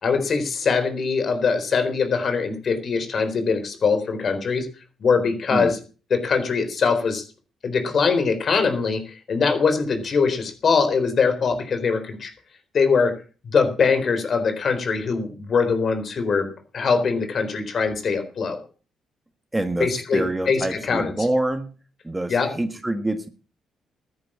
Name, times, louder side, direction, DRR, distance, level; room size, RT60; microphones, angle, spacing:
voice 1, 0.0-4.7 5.0-5.8 6.1-7.2 7.6-12.3 12.7-13.1 13.4-16.5 16.7-18.6 19.8-21.1 22.3-22.5, left 5 dB, 50° left, 8 dB, 4.0 m, -22 dB
voice 2, 19.5-21.7 22.0-23.3, right 1 dB, 10° right, 9 dB, 1.6 m, -26 dB
13.5 x 10.5 x 7.4 m, 0.37 s
cardioid pair, 90°, 0 cm